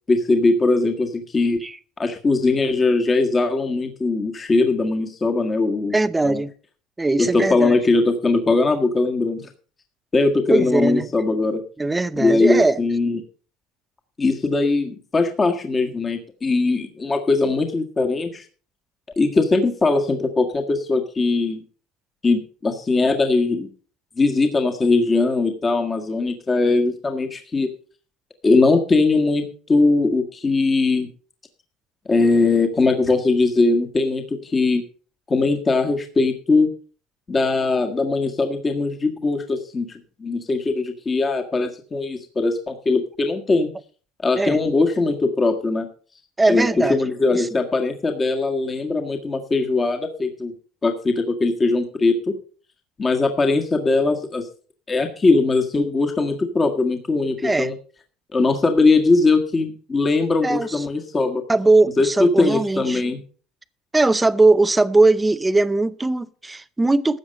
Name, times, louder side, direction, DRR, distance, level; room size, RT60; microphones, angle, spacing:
voice 1, 0.1-1.6 2.0-5.9 6.2-6.4 7.2-9.5 10.1-11.6 12.1-13.2 14.2-18.4 19.2-21.6 22.2-23.7 24.2-27.7 28.4-31.1 32.1-34.8 35.3-36.7 37.3-43.7 44.2-45.9 46.5-50.5 50.8-52.3 53.0-54.4 54.9-57.7 58.3-61.4 62.0-63.2, left 3 dB, 20° left, 1.6 m, -20 dB
voice 2, 5.9-6.5 7.0-7.8 10.5-11.1 11.8-12.8 44.4-44.6 46.4-47.0 47.3-47.5 57.4-57.7 60.4-60.8 61.5-63.0 63.9-67.2, right 2 dB, 10° right, 0.6 m, -19 dB
13.5 x 8.0 x 5.3 m
cardioid pair, 125°, 0 cm